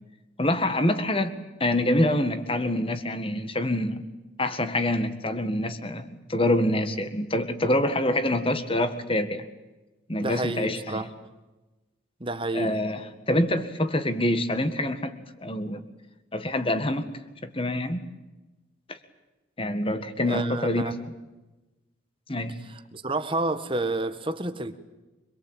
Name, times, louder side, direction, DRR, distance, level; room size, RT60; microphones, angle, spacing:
voice 1, 0.4-4.0 4.4-9.4 10.1-11.1 12.5-13.0 13.3-15.1 15.4-15.8 16.3-17.1 17.4-18.0 18.9-19.0 19.6-20.9 22.3-22.5, left 1 dB, 25° left, 10 dB, 1.8 m, -26 dB
voice 2, 10.2-11.1 12.2-12.8 20.3-20.9 22.7-24.7, right 2 dB, 25° right, 9 dB, 1.5 m, -30 dB
25.5 x 22.5 x 9.0 m, 1.1 s
head